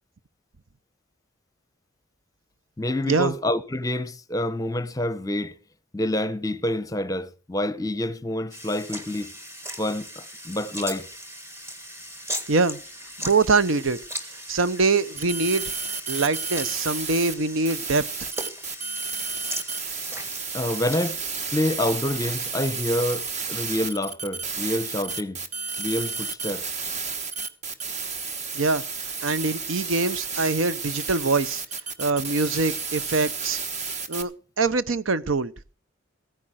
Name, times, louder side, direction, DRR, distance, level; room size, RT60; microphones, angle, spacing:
voice 1, 2.8-5.5 5.9-9.3 9.8-11.1 18.9-19.1 20.5-21.2 21.5-25.4 25.8-26.7, left 1 dB, 15° left, 0.7 m, -27 dB
sound 1, 8.5-21.1, equal, 10° right, 1.7 m, -38 dB
voice 2, 12.5-12.8 13.2-14.0 14.3-18.1 28.5-31.6 32.0-33.6 34.1-34.3 34.6-35.5, right 3 dB, 70° right, 0.8 m, -24 dB
sound 2, 15.2-17.3 17.7-34.2, right 4 dB, 35° right, 1.2 m, -32 dB
15.0 x 9.8 x 6.2 m
head